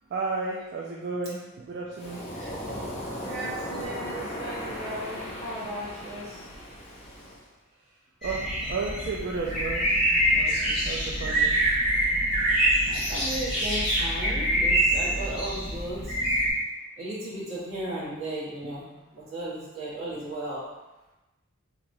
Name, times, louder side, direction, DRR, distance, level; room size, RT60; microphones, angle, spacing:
voice 1, 0.1-2.5 3.8-4.0 4.3-4.6 8.2-9.8 10.3-11.5, right 4 dB, 50° right, -2 dB, 0.3 m, -33 dB
Waves surf, 2.0-7.4, equal, 35° left, 0.7 m, -37 dB
voice 2, 3.2-6.3 12.9-16.0 17.0-18.8 19.1-20.6, right 1 dB, 70° right, -8 dB, 1.3 m, -35 dB
sound 1, 8.2-16.5, right 1 dB, ahead, 1.4 m, -25 dB
3.0 x 2.8 x 2.6 m, 1.0 s
head